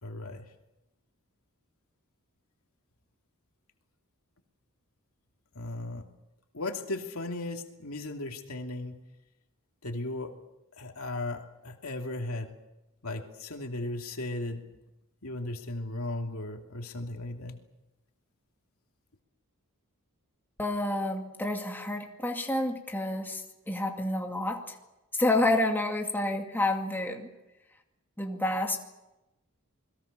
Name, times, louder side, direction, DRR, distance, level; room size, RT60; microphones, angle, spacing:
voice 1, 0.0-0.4 5.6-6.0 6.5-9.0 9.8-10.3 10.8-12.5 13.0-14.6 15.2-17.6, left 2 dB, 70° left, 3 dB, 2.7 m, -36 dB
voice 2, 20.6-24.8 25.1-27.3 28.2-28.8, left 1 dB, 10° left, 2 dB, 2.3 m, -29 dB
29.0 x 21.5 x 6.8 m, 0.96 s
head